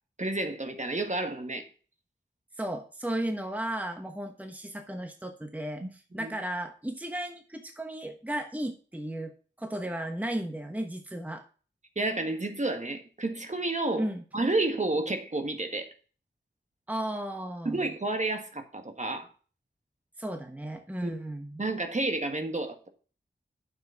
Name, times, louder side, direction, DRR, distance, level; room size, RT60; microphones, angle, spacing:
voice 1, 0.2-1.7 5.8-5.9 6.2-6.3 11.9-15.9 17.6-19.3 21.0-21.2 21.6-22.8, right 2 dB, 35° right, 1.6 m, -30 dB
voice 2, 2.6-9.3 9.6-11.4 14.0-14.2 16.9-17.9 20.2-21.6, right 1 dB, 10° right, 1.2 m, -35 dB
9.1 x 7.1 x 3.9 m
wide cardioid pair, 55°, 20 cm